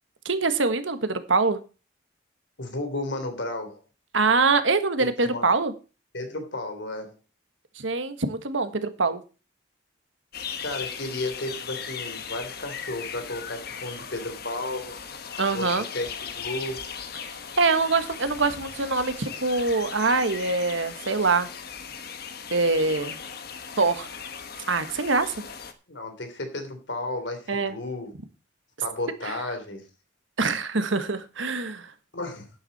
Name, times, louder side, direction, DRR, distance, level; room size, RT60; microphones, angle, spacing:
voice 1, 0.2-1.6 4.1-5.7 7.8-9.2 15.4-15.8 17.6-21.5 22.5-23.2 23.8-24.1 24.7-25.3 27.5-27.7 29.2-29.3 30.4-31.9, right 3 dB, 85° right, 9 dB, 1.5 m, -24 dB
voice 2, 2.6-3.8 5.0-5.5 6.1-7.1 10.5-14.9 15.5-16.8 25.9-28.1 28.8-29.9 32.1-32.5, left 2 dB, 70° left, 6 dB, 3.4 m, -33 dB
sound 1, 10.3-25.7, left 7 dB, 55° left, 1.4 m, -38 dB
11.5 x 9.4 x 4.2 m, 0.33 s
head